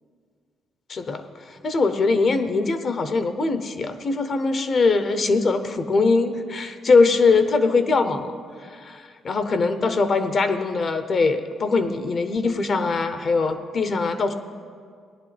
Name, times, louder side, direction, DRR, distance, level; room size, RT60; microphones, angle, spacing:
voice 1, 0.9-14.3, left 4 dB, 50° left, 9 dB, 0.7 m, -22 dB
18.0 x 10.5 x 3.3 m, 2.1 s
cardioid pair, 90°, 0 cm